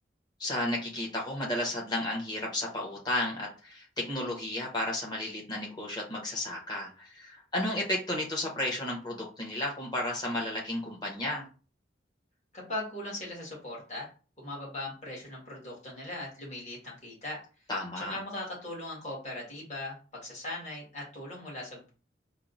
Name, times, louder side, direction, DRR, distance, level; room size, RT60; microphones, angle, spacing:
voice 1, 0.4-11.5 17.7-18.2, left 1 dB, 25° left, -2 dB, 0.9 m, -33 dB
voice 2, 12.5-14.1 14.4-17.4 18.0-21.9, left 1 dB, 40° left, -4 dB, 1.5 m, -39 dB
4.5 x 2.0 x 2.6 m, 0.36 s
head